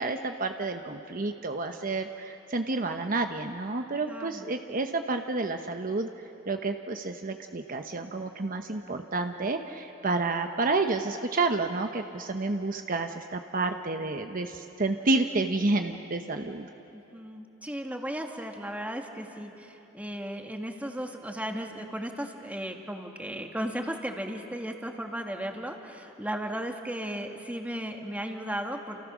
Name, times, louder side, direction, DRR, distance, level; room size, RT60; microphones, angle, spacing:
voice 1, 0.0-6.1 6.5-16.7, right 3 dB, 45° right, 6 dB, 0.9 m, -30 dB
voice 2, 4.1-4.5 16.9-29.0, equal, 10° right, 3 dB, 1.7 m, -35 dB
29.5 x 28.5 x 6.2 m, 3.0 s
head